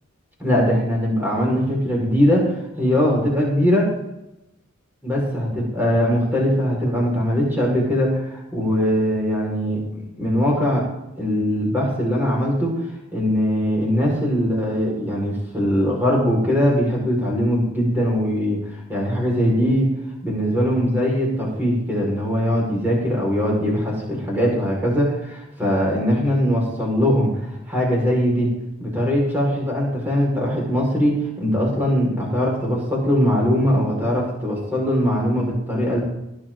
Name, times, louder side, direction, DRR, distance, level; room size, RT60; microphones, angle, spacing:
voice 1, 0.4-3.9 5.0-10.8 11.2-12.8 13.1-19.9 20.2-28.5 28.8-36.0, equal, 10° right, -3 dB, 5.4 m, -21 dB
19.5 x 10.5 x 4.0 m, 0.91 s
head